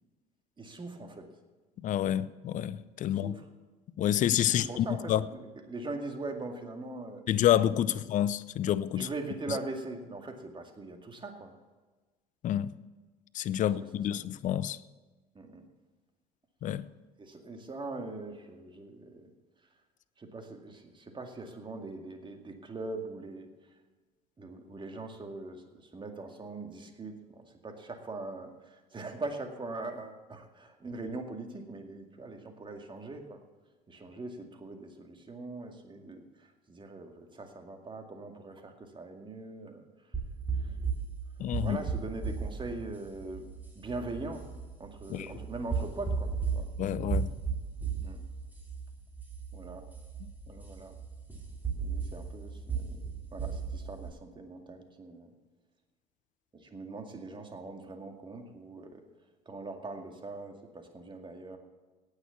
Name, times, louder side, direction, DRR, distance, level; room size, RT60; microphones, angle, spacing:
voice 1, 0.6-1.3 3.0-3.4 4.5-7.2 7.9-8.0 9.0-11.5 13.6-13.7 14.1-14.2 15.4-15.7 17.2-19.3 20.2-23.5 24.4-33.4 33.9-39.8 40.6-40.8 41.6-44.5 44.8-46.7 48.0-48.2 49.5-49.9 50.5-50.9 51.8-53.0 53.3-55.3 56.5-59.0 59.5-61.6, right 2 dB, 25° right, 2.1 m, -41 dB
voice 2, 1.8-3.4 4.0-5.2 7.3-9.1 12.4-12.7 13.3-14.8 16.6-16.9 41.4-41.8 45.1-45.3 46.8-47.3, left 11 dB, 40° left, 0.6 m, -28 dB
sound 1, 40.1-54.1, right 5 dB, 10° right, 3.7 m, -36 dB
17.5 x 6.6 x 7.0 m
figure-of-eight pair, 60°, 20 cm